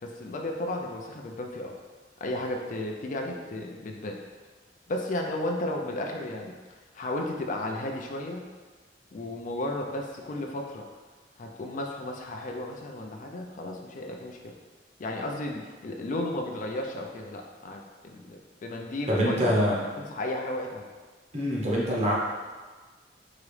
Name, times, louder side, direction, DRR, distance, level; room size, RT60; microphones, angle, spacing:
voice 1, 0.0-1.7 2.2-4.2 4.9-8.4 9.1-10.8 11.4-14.5 15.0-19.5 20.0-20.8, left 1 dB, 45° left, 1 dB, 0.4 m, -34 dB
voice 2, 19.1-19.9 21.3-22.1, equal, 40° right, -4 dB, 0.9 m, -25 dB
4.8 x 3.0 x 3.2 m, 1.3 s
head